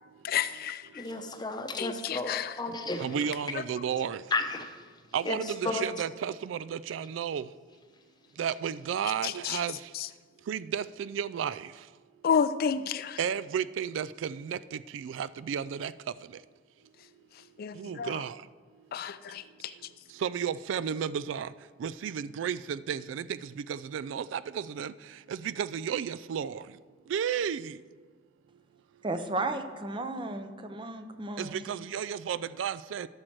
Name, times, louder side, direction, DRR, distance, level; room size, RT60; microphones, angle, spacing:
voice 1, 0.2-0.8 1.8-2.5 9.2-9.6 12.2-13.2 17.6-18.1 18.9-19.4, left 7 dB, 55° left, 0.4 m, -30 dB
voice 2, 0.9-3.1 4.3-4.7 5.2-5.4 5.6-5.8, left 2 dB, 25° left, 0.8 m, -33 dB
voice 3, 3.0-4.2 5.1-7.5 8.4-9.8 10.5-11.7 13.2-15.9 17.8-18.4 20.2-21.5 21.8-24.9 25.3-26.6 27.1-27.8 31.4-33.1, right 8 dB, 80° right, 0.3 m, -33 dB
voice 4, 29.0-31.6, right 2 dB, 25° right, 0.6 m, -34 dB
13.0 x 6.3 x 4.6 m
head